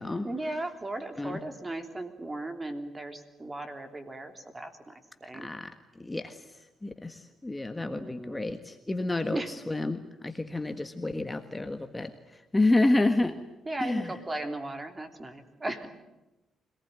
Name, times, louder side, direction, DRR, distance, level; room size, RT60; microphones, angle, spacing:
voice 1, 0.2-4.9 5.2-5.5 7.7-8.4 9.3-9.5 13.7-15.9, right 2 dB, 20° right, 6 dB, 3.4 m, -36 dB
voice 2, 5.3-5.7 6.0-6.4 6.8-12.1 12.5-13.4 13.8-14.1, left 2 dB, 15° left, 7 dB, 1.5 m, -29 dB
25.5 x 19.0 x 9.5 m, 0.99 s
cardioid pair, 90°, 0 cm